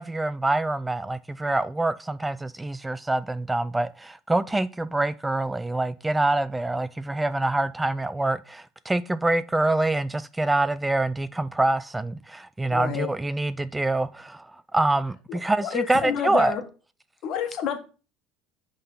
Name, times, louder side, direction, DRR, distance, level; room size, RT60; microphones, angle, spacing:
voice 1, 0.0-16.6, right 2 dB, 10° right, 0.3 m, -25 dB
voice 2, 12.7-13.1 15.3-16.6 17.2-17.8, left 8 dB, 60° left, 1.5 m, -29 dB
8.3 x 3.8 x 5.6 m
supercardioid pair, 105°, 0 cm